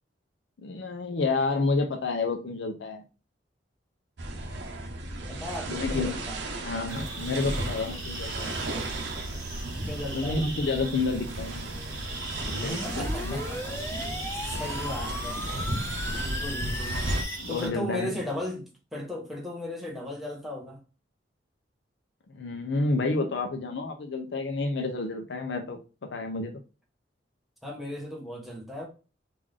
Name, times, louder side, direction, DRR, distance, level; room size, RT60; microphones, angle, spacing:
voice 1, 0.6-3.0 5.7-6.1 6.6-8.6 10.1-11.7 12.4-13.4 17.4-18.2 22.3-25.8 26.1-26.5, left 3 dB, 80° left, 0.6 m, -29 dB
sound 1, 4.2-17.2, right 1 dB, 75° right, 0.8 m, -35 dB
voice 2, 5.3-6.4 9.9-10.4 12.7-14.0 14.5-15.4 15.9-17.0 17.5-20.8 27.6-28.9, left 1 dB, ahead, 1.0 m, -37 dB
sound 2, 6.9-17.7, right 2 dB, 50° right, 1.5 m, -39 dB
sound 3, 12.4-17.4, left 2 dB, 15° left, 0.4 m, -37 dB
3.6 x 2.5 x 3.3 m
head